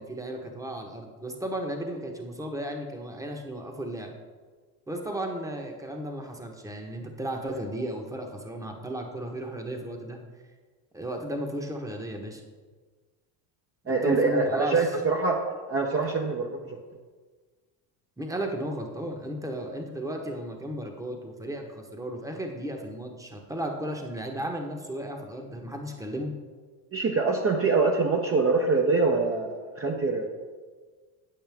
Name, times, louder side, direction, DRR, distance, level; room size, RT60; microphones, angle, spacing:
voice 1, 0.0-4.1 4.9-10.2 10.9-12.4 13.8-14.8 18.2-26.3, right 1 dB, 5° right, 3 dB, 1.1 m, -34 dB
voice 2, 13.9-15.4 15.7-16.8 26.9-30.3, right 3 dB, 30° right, 0 dB, 0.9 m, -24 dB
8.5 x 7.7 x 3.5 m, 1.4 s
supercardioid pair, 85°, 48 cm